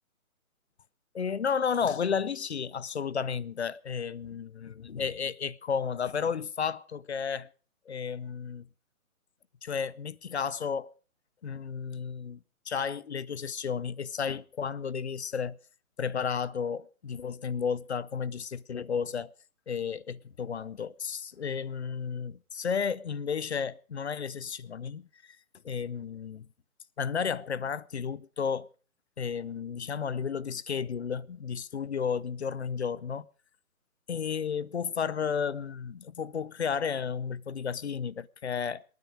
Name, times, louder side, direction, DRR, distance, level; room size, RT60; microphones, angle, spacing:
voice 1, 1.1-7.5 7.9-8.7 9.6-10.9 11.4-12.4 12.6-15.6 16.0-19.3 19.7-25.4 25.6-26.5 27.0-28.7 29.2-33.3 34.1-38.8, left 6 dB, 50° left, 0.7 m, -32 dB
26.5 x 9.5 x 4.9 m
figure-of-eight pair, 145°, 43 cm